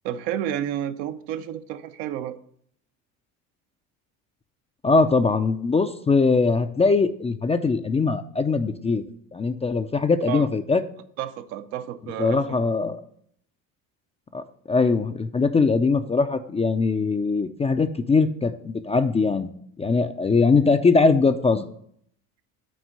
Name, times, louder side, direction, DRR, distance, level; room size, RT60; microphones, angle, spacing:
voice 1, 0.0-2.4 10.3-10.5 11.2-12.6, right 11 dB, 75° right, 10 dB, 0.7 m, -31 dB
voice 2, 4.8-9.0 9.3-10.8 12.2-13.0 14.3-19.5 19.8-21.6, left 4 dB, 15° left, 9 dB, 0.3 m, -21 dB
6.3 x 4.3 x 6.6 m, 0.67 s
supercardioid pair, 75°, 42 cm